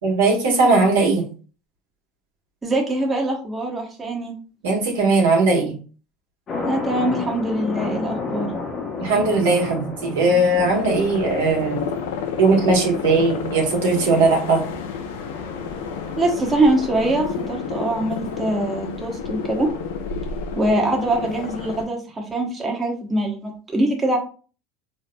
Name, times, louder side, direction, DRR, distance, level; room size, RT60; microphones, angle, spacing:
voice 1, 0.0-1.2 4.6-5.7 9.0-11.9 12.4-14.6, right 3 dB, 85° right, 0 dB, 1.1 m, -19 dB
voice 2, 2.6-4.3 6.6-8.5 16.2-19.7 20.5-24.2, right 1 dB, 20° right, 0 dB, 0.9 m, -23 dB
sound 1, 6.5-18.1, left 4 dB, 40° left, 1.0 m, -33 dB
sound 2, 10.5-21.9, left 6 dB, 80° left, 0.4 m, -30 dB
3.7 x 2.9 x 2.2 m, 0.38 s
hypercardioid pair, 95°, 0 cm